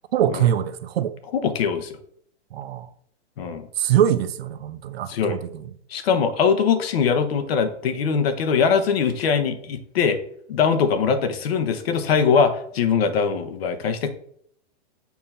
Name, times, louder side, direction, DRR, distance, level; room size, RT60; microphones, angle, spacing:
voice 1, 0.1-1.1 2.5-2.9 3.8-5.6, right 10 dB, 60° right, 0.6 m, -23 dB
voice 2, 1.3-2.0 3.4-3.7 5.1-5.4 5.9-10.2 10.5-14.1, left 6 dB, 60° left, 1.0 m, -22 dB
7.0 x 2.8 x 5.7 m
hypercardioid pair, 170°, 34 cm